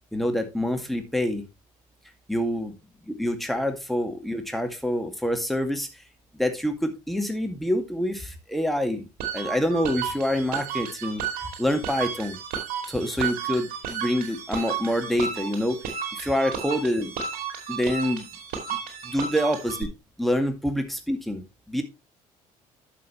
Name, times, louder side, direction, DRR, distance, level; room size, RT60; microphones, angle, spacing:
voice 1, 0.1-1.4 2.3-2.7 3.2-5.9 6.4-9.1 9.3-11.2 11.6-12.4 12.9-15.8 16.1-17.1 17.7-18.2 18.7-19.9 20.2-21.8, equal, ahead, 5 dB, 2.1 m, -26 dB
sound 1, 9.2-19.8, right 7 dB, 55° right, 2.6 m, -33 dB
11.5 x 6.9 x 3.1 m, 0.25 s
figure-of-eight pair, 55°, 18 cm